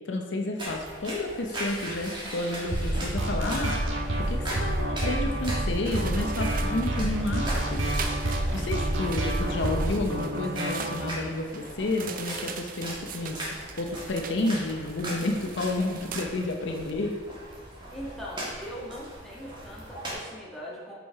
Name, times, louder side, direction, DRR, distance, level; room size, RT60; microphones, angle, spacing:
voice 1, 0.1-3.8 4.2-7.8 8.5-13.5 13.8-17.1, left 2 dB, 65° left, 3 dB, 0.6 m, -30 dB
sound 1, 0.6-20.1, right 1 dB, 25° right, 1.6 m, -39 dB
sound 2, 2.7-11.1, right 1 dB, 85° right, 1.1 m, -28 dB
sound 3, 5.8-16.9, right 5 dB, 45° right, 0.5 m, -41 dB
voice 2, 17.9-20.9, equal, ahead, -6 dB, 1.4 m, -40 dB
5.8 x 5.7 x 4.5 m, 1.5 s
head